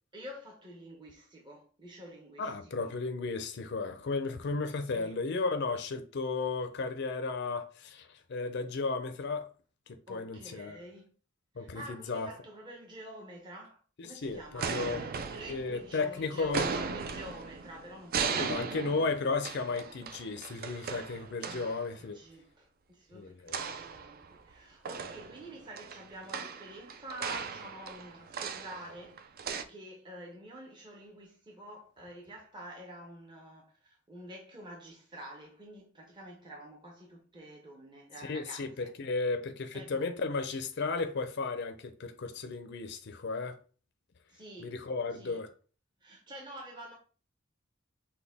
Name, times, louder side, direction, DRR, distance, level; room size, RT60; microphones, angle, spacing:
voice 1, 0.1-3.0 4.8-5.2 10.1-11.1 11.5-13.8 14.0-18.7 21.4-38.9 39.7-40.1 44.3-44.7 45.1-45.4 46.0-47.0, right 1 dB, 25° right, 0.8 m, -48 dB
voice 2, 2.4-9.5 9.9-10.8 11.6-12.3 14.2-15.0 15.5-16.6 18.3-22.2 23.1-23.6 38.2-43.6 44.6-45.5, left 4 dB, 60° left, 0.5 m, -34 dB
sound 1, 14.2-16.1 16.4-21.8 23.5-24.5 24.9-29.6, right 5 dB, 45° right, 0.4 m, -37 dB
6.0 x 2.2 x 3.4 m
head